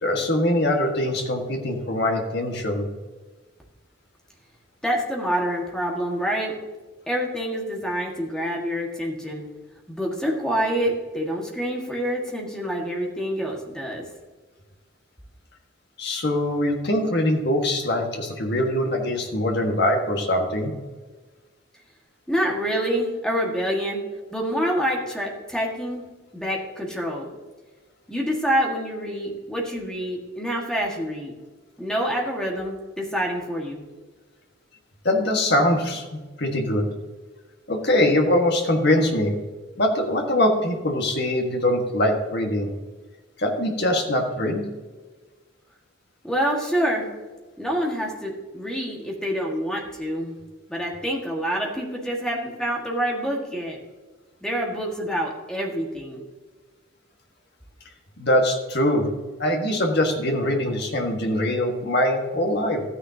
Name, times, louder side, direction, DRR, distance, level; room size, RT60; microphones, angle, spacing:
voice 1, 0.0-2.9 16.0-20.7 35.0-36.9 37.7-39.4 39.8-42.7 43.4-44.7 58.2-59.1 59.4-62.8, left 1 dB, 50° left, 2 dB, 1.6 m, -23 dB
voice 2, 4.8-6.6 7.1-9.4 9.9-14.0 22.3-24.0 24.3-26.0 26.3-27.3 28.1-31.3 31.8-33.8 46.2-47.1 47.6-50.4 50.7-53.8 54.4-56.2, equal, 5° left, -1 dB, 1.7 m, -27 dB
13.5 x 9.8 x 2.8 m, 1.3 s
head